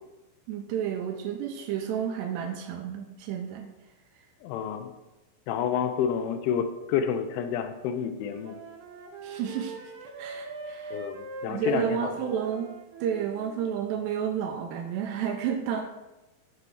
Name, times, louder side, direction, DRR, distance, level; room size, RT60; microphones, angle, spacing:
voice 1, 0.5-3.7 9.2-9.8 10.2-11.0 11.5-12.7 13.0-15.8, right 8 dB, 85° right, 5 dB, 2.6 m, -31 dB
voice 2, 4.4-4.9 5.5-8.6 10.9-12.1, left 7 dB, 90° left, 8 dB, 3.2 m, -29 dB
Wind instrument woodwind instrument, 8.1-13.7, right 3 dB, 65° right, 3.3 m, -42 dB
7.9 x 6.9 x 4.7 m, 1.0 s
omnidirectional pair, 5.4 m